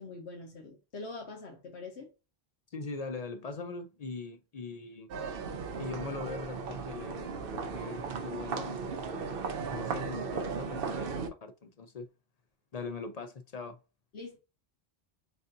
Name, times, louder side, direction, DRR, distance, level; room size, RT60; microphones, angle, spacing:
voice 1, 0.0-2.1 14.1-14.4, left 3 dB, 90° left, 1.4 m, -44 dB
voice 2, 2.7-5.2 5.8-8.8 9.7-12.1 12.7-13.8, left 4 dB, 50° left, 0.5 m, -41 dB
sound 1, 5.1-11.3, right 5 dB, 60° right, 0.8 m, -36 dB
6.3 x 2.6 x 2.6 m
omnidirectional pair, 1.1 m